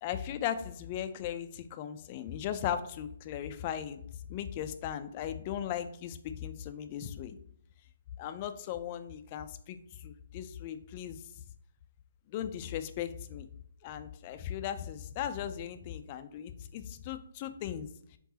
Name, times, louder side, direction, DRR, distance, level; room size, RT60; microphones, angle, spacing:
voice 1, 0.0-4.0 4.3-7.4 8.2-11.2 12.3-13.5 13.8-18.2, left 10 dB, 30° left, 10 dB, 0.4 m, -37 dB
4.6 x 3.9 x 2.8 m, 0.66 s
hypercardioid pair, 155°, 0 cm